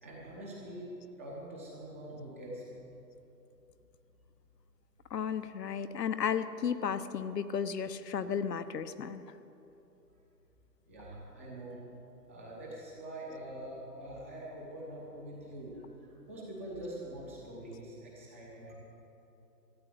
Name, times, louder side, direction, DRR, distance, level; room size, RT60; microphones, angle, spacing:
voice 1, 0.0-0.9 1.2-2.6 10.9-11.8 12.3-15.9 16.3-18.7, right 1 dB, 10° right, -4 dB, 0.8 m, -44 dB
voice 2, 5.1-9.2, left 7 dB, 70° left, 11 dB, 0.9 m, -34 dB
13.5 x 8.8 x 8.4 m, 2.9 s
hypercardioid pair, 160°, 50 cm